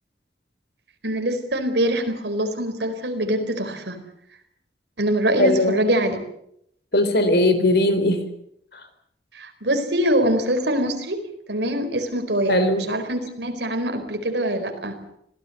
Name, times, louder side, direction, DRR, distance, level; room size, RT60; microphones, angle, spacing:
voice 1, 1.0-4.0 5.0-6.2 9.3-11.2 11.5-15.0, right 1 dB, 75° right, 6 dB, 4.6 m, -24 dB
voice 2, 5.4-5.8 6.9-8.2 12.5-12.9, left 1 dB, 65° left, 9 dB, 3.9 m, -19 dB
26.0 x 17.5 x 8.1 m, 0.73 s
head